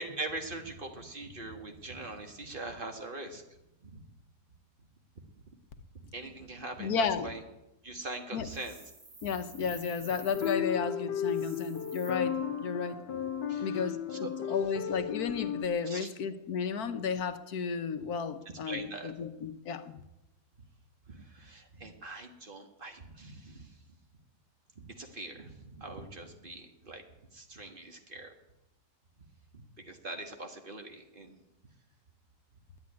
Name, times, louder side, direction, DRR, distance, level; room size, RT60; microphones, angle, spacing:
voice 1, 0.0-3.4 3.8-4.0 6.0-7.4 7.8-8.8 13.5-13.8 14.1-14.3 15.9-16.1 18.5-19.1 21.1-23.7 24.8-27.0 27.3-28.3 29.5-31.4, right 2 dB, 30° right, 4 dB, 1.6 m, -42 dB
voice 2, 6.8-7.3 8.3-8.5 9.2-13.0 13.6-20.0, left 6 dB, 65° left, 9 dB, 1.3 m, -33 dB
sound 1, 8.5-10.6 11.2-12.1, right 2 dB, 60° right, 3.2 m, -50 dB
sound 2, 10.3-15.6, left 8 dB, 85° left, 1.5 m, -34 dB
10.5 x 9.9 x 9.5 m, 0.91 s
omnidirectional pair, 1.8 m